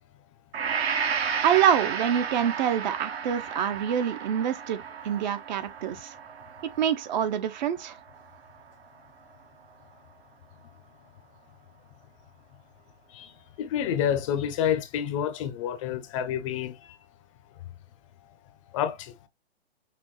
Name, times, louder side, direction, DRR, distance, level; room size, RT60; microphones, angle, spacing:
Gong, 0.5-8.6, right 6 dB, 65° right, 1.5 m, -33 dB
voice 1, 1.4-6.1 6.8-8.0, right 9 dB, 45° right, 0.8 m, -26 dB
voice 2, 13.6-17.0 18.7-19.3, left 9 dB, 30° left, 0.6 m, -29 dB
6.0 x 2.9 x 3.0 m
hypercardioid pair, 135°, 33 cm